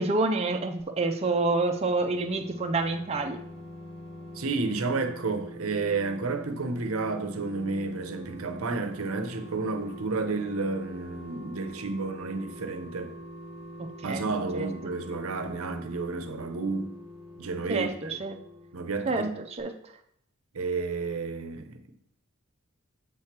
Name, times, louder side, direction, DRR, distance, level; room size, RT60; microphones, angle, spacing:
voice 1, 0.0-3.4 13.8-14.3 14.5-14.9 17.7-18.4 19.1-19.9, right 3 dB, 30° right, 0.5 m, -28 dB
sound 1, 1.1-19.3 19.6-19.7, equal, 30° left, 1.0 m, -44 dB
voice 2, 4.3-13.1 14.0-16.9 17.4-18.2 18.7-19.3 20.5-21.8, right 3 dB, 85° right, 0.7 m, -31 dB
7.5 x 3.0 x 5.9 m
head